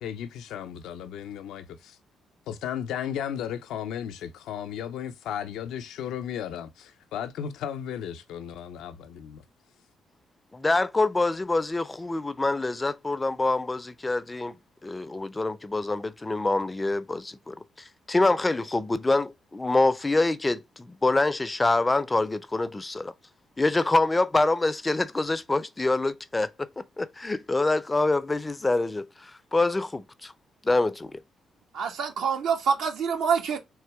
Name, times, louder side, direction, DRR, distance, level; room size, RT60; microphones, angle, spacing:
voice 1, 0.0-2.0 2.5-9.4, left 9 dB, 85° left, 0.5 m, -35 dB
voice 2, 10.5-14.6 14.8-23.1 23.6-30.3 30.6-31.2, left 2 dB, 20° left, 0.4 m, -26 dB
voice 3, 31.7-33.6, right 6 dB, 80° right, 1.3 m, -26 dB
3.6 x 3.0 x 4.5 m
cardioid pair, 90°, 0 cm